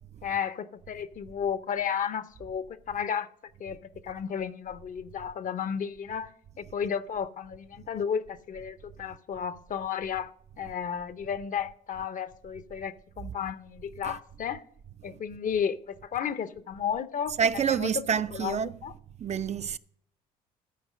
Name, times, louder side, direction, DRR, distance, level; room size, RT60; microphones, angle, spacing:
voice 1, 0.2-3.3 3.6-10.3 10.6-14.6 15.0-17.4 17.7-17.9 18.3-18.9, left 7 dB, 45° left, 0.8 m, -33 dB
voice 2, 17.4-18.9 19.2-19.8, right 7 dB, 40° right, 0.5 m, -28 dB
13.5 x 4.8 x 6.3 m
hypercardioid pair, 60°, 18 cm